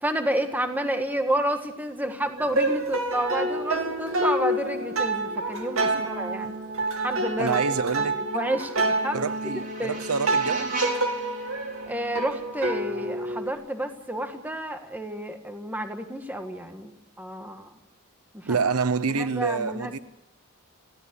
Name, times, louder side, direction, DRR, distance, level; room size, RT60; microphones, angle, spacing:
voice 1, 0.0-6.5 7.0-10.0 11.9-17.7 18.3-18.6 19.1-20.0, right 1 dB, 10° right, 1.6 m, -30 dB
sound 1, 2.4-13.5, right 2 dB, 65° right, 2.4 m, -28 dB
voice 2, 7.4-8.2 9.1-10.8 18.4-20.0, right 5 dB, 90° right, 0.9 m, -27 dB
sound 2, 8.5-13.5, right 2 dB, 40° right, 4.7 m, -39 dB
21.5 x 16.0 x 8.2 m
head